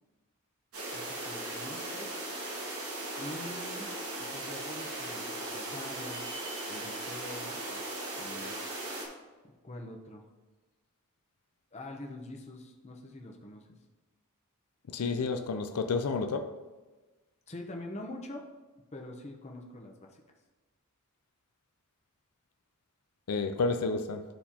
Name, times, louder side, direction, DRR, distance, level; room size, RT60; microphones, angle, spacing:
sound 1, 0.7-9.1, right 2 dB, 75° right, 1.7 m, -38 dB
voice 1, 0.9-2.1 3.2-3.9 4.2-6.3 6.7-8.6 9.6-10.2 11.7-13.7 17.5-18.4 18.9-20.2, left 1 dB, 30° left, 0.8 m, -45 dB
voice 2, 14.9-16.5 23.3-24.2, left 4 dB, 90° left, 0.5 m, -30 dB
12.0 x 4.3 x 2.9 m
head